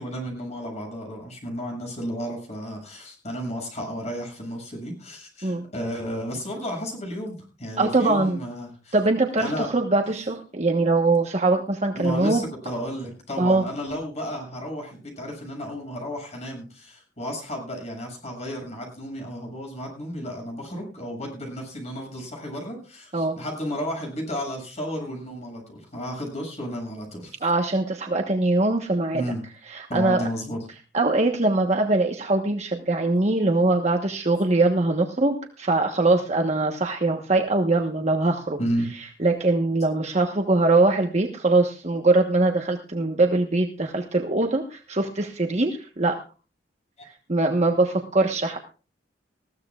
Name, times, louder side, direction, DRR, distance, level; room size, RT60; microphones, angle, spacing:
voice 1, 0.0-9.0 9.4-9.7 11.9-27.4 29.1-29.4 29.9-30.6 38.6-38.9 47.0-47.1, equal, 40° left, 1 dB, 7.1 m, -33 dB
voice 2, 7.8-8.4 8.9-12.4 13.4-13.7 23.1-23.4 27.4-29.2 29.7-30.2 30.9-38.6 38.9-46.2 47.0-48.6, right 2 dB, 40° right, 3 dB, 1.2 m, -22 dB
20.5 x 15.5 x 2.4 m, 0.35 s
head